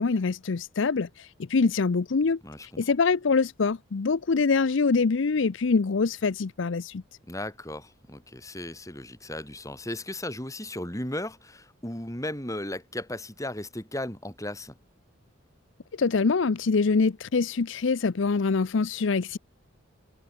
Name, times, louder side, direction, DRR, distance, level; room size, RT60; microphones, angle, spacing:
voice 1, 0.0-7.0 16.0-19.4, left 4 dB, 70° left, 0.6 m, -24 dB
voice 2, 2.4-2.9 7.2-14.8, left 1 dB, 15° left, 5.6 m, -36 dB
head